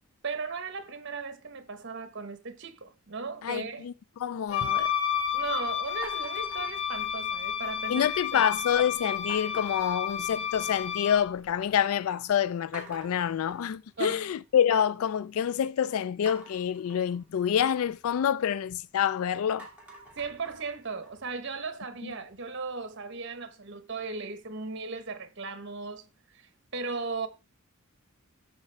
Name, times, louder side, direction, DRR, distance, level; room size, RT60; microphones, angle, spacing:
voice 1, 0.2-3.9 5.3-8.5 14.0-14.2 20.2-26.0 26.3-27.3, right 4 dB, 55° right, 1.0 m, -37 dB
voice 2, 3.4-3.9 4.2-4.9 7.9-19.7 22.0-22.1, left 9 dB, 80° left, 0.3 m, -27 dB
Wind instrument woodwind instrument, 4.5-11.3, left 8 dB, 65° left, 1.2 m, -31 dB
sound 1, 6.0-7.5 7.9-8.4 9.3-10.8 11.1-11.7 12.1-12.2 12.7-14.9 16.3-19.1 19.4-22.4, right 2 dB, 5° right, 2.2 m, -50 dB
13.0 x 4.4 x 3.3 m
head